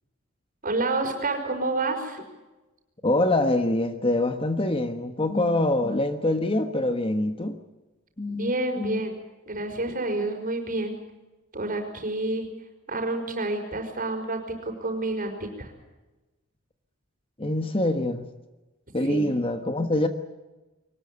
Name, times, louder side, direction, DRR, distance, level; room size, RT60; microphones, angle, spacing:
voice 1, 0.6-2.2 8.3-9.2 9.5-11.0 11.5-12.5 12.9-15.7 19.0-19.3, right 2 dB, 40° right, 4 dB, 5.4 m, -29 dB
voice 2, 3.0-7.6 8.2-9.0 17.4-18.3 18.9-20.1, left 1 dB, 25° left, 8 dB, 1.3 m, -25 dB
23.0 x 20.0 x 8.2 m, 1.1 s
head